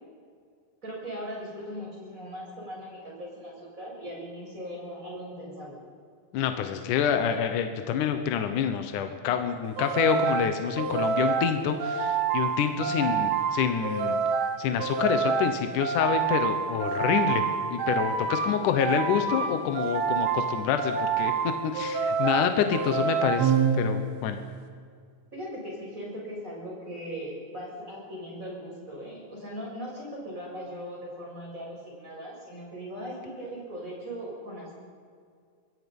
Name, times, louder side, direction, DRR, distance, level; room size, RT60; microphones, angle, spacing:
voice 1, 0.8-5.8 12.9-13.2 25.3-34.7, equal, 15° right, -3 dB, 7.2 m, -39 dB
voice 2, 6.3-14.1 14.6-17.4 17.7-24.4, left 8 dB, 70° left, 7 dB, 2.0 m, -27 dB
sound 1, 9.8-24.3, right 6 dB, 65° right, 3.3 m, -28 dB
26.5 x 21.5 x 5.5 m, 2.1 s
omnidirectional pair, 5.1 m